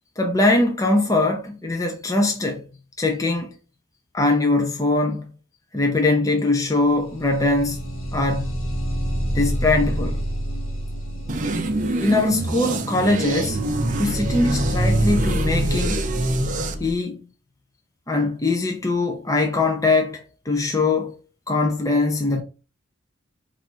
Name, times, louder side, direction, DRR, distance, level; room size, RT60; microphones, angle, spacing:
voice 1, 0.2-2.7 3.0-3.5 4.1-5.3 5.7-8.6 9.3-10.3 12.0-13.6 14.0-16.0 16.8-17.2 18.1-21.2 21.5-22.4, left 2 dB, 15° left, 0.6 m, -22 dB
sound 1, 6.8-16.9, equal, 75° left, 1.3 m, -28 dB
sound 2, 11.3-16.8, right 2 dB, 40° right, 0.6 m, -25 dB
4.6 x 2.6 x 4.4 m
head